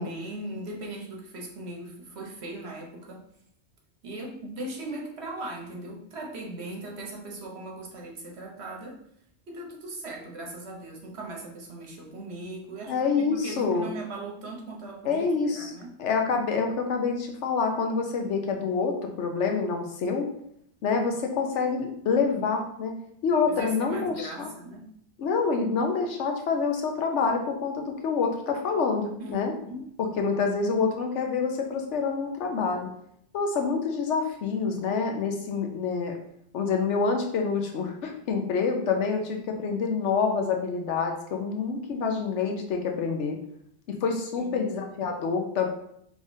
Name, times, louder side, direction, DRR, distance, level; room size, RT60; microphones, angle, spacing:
voice 1, 0.0-3.2 4.0-9.0 9.5-15.9 23.5-24.9 29.2-29.9 44.3-44.9, right 2 dB, 70° right, 0 dB, 1.2 m, -39 dB
voice 2, 12.9-13.9 15.0-15.7 16.0-20.3 20.8-23.0 23.2-24.5 25.2-29.5 30.0-32.9 33.3-36.1 36.5-43.4 43.9-45.7, left 5 dB, 90° left, 3 dB, 1.1 m, -27 dB
4.9 x 3.4 x 2.7 m, 0.70 s
omnidirectional pair, 1.2 m